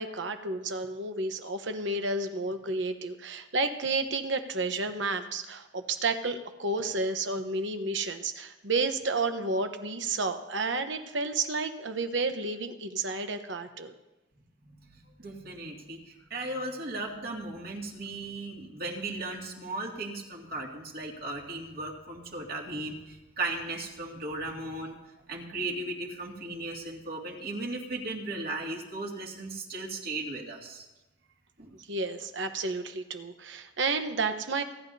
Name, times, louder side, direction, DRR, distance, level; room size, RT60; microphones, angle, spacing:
voice 1, 0.0-13.9 31.9-34.6, right 3 dB, 70° right, 8 dB, 1.1 m, -31 dB
voice 2, 15.2-25.0 25.3-30.9 31.6-31.7, right 2 dB, 55° right, -1 dB, 2.4 m, -36 dB
29.0 x 11.0 x 2.8 m, 1.0 s
head